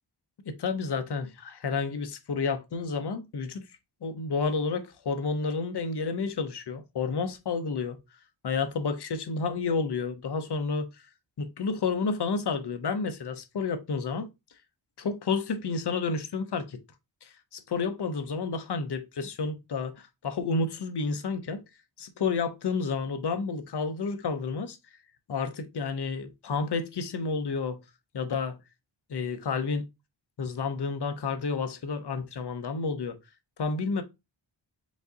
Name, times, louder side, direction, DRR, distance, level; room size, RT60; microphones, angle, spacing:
voice 1, 0.5-3.6 4.0-8.0 8.4-10.9 11.4-14.3 15.0-16.8 17.2-21.6 22.0-24.8 25.3-27.8 28.1-28.6 29.1-29.8 30.4-33.2 33.6-34.0, left 4 dB, 55° left, 0.8 m, -30 dB
5.1 x 2.6 x 3.9 m
wide cardioid pair, 100°, 48 cm